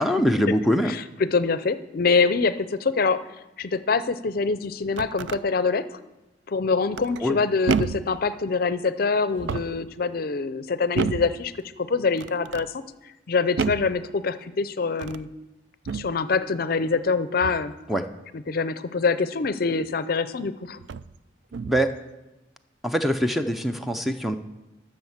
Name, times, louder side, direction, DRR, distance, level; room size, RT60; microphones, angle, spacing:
voice 1, 0.0-1.0 7.2-7.4 17.9-18.0 21.7-21.9 22.8-24.4, equal, ahead, 7 dB, 0.5 m, -23 dB
voice 2, 0.8-3.2 3.6-5.8 6.5-11.5 11.8-12.7 13.0-15.3 15.9-17.7 18.3-20.8, left 4 dB, 55° left, 13 dB, 0.5 m, -25 dB
sound 1, 4.7-5.4 6.9-7.3 7.7-8.2 9.3-9.9 10.9-11.4 12.2-12.7 13.6-14.0 14.9-15.3 15.8-16.2 17.4-17.7 19.8-19.9 20.8-21.1 21.5-21.9, right 5 dB, 85° right, 0.4 m, -30 dB
12.0 x 6.5 x 7.2 m, 0.99 s
head